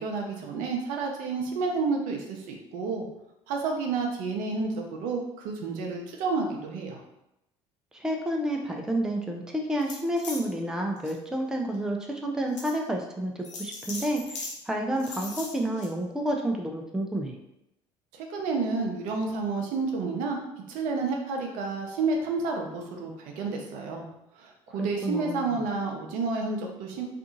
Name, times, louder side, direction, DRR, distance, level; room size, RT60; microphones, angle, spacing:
voice 1, 0.0-3.1 3.5-7.0 18.1-20.4 20.7-24.0 24.4-27.0, right 4 dB, 65° right, 1 dB, 0.6 m, -30 dB
voice 2, 7.9-14.4 14.7-17.4 24.8-25.6, right 1 dB, 5° right, 1 dB, 0.4 m, -30 dB
sound 1, 9.8-10.4 11.0-11.1 11.7-11.8 12.6-12.7 13.4-14.5 15.0-15.9, left 3 dB, 90° left, 0.5 m, -38 dB
2.6 x 2.5 x 2.6 m, 0.86 s
hypercardioid pair, 60°, 15 cm